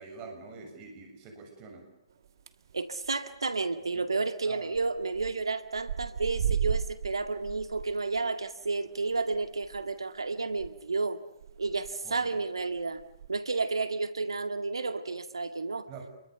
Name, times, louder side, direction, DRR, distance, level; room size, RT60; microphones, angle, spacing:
voice 1, 0.0-1.9 3.9-4.1 4.4-4.7 12.0-12.4 15.9-16.1, right 4 dB, 30° right, 4 dB, 7.3 m, -45 dB
sound 1, 2.2-2.7 3.0-3.3 3.6-3.7 3.9-4.0 4.7-5.3 5.6-10.7 11.0-11.1 11.4-11.9 12.6-13.3, right 8 dB, 55° right, 1.7 m, -35 dB
voice 2, 2.7-11.2 11.6-13.0 13.3-15.9, right 3 dB, 75° right, 10 dB, 2.0 m, -31 dB
29.5 x 23.0 x 7.0 m, 0.87 s
figure-of-eight pair, 130°, 3 cm